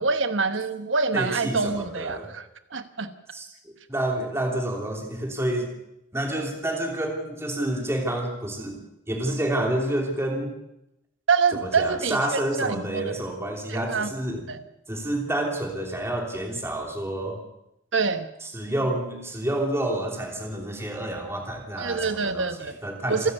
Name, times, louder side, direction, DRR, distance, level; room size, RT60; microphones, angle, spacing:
voice 1, 0.0-2.5 2.7-3.1 11.3-13.1 13.7-14.1 14.5-14.6 17.9-18.3 21.8-22.7 23.1-23.3, right 4 dB, 75° right, 10 dB, 1.3 m, -26 dB
voice 2, 1.1-2.3 3.3-5.7 6.1-10.5 11.6-14.5 14.9-17.4 18.4-23.3, right 1 dB, 15° right, 1 dB, 3.0 m, -29 dB
28.0 x 11.0 x 8.2 m, 0.87 s
head